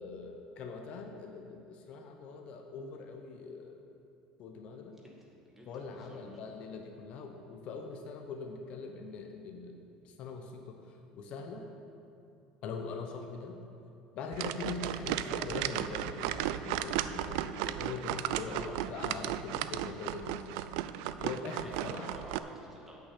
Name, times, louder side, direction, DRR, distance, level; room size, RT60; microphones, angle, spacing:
voice 1, 0.0-3.8 4.4-5.0 5.7-11.7 12.6-13.6 14.2-20.6 21.2-22.2, left 4 dB, 50° left, 4 dB, 0.9 m, -42 dB
voice 2, 4.9-6.2 14.7-14.9 18.5-18.8 21.6-22.9, right 1 dB, 10° right, -3 dB, 2.0 m, -50 dB
sound 1, 14.3-22.4, right 12 dB, 80° right, 0.4 m, -35 dB
8.3 x 6.4 x 8.3 m, 2.8 s
cardioid pair, 135°, 3 cm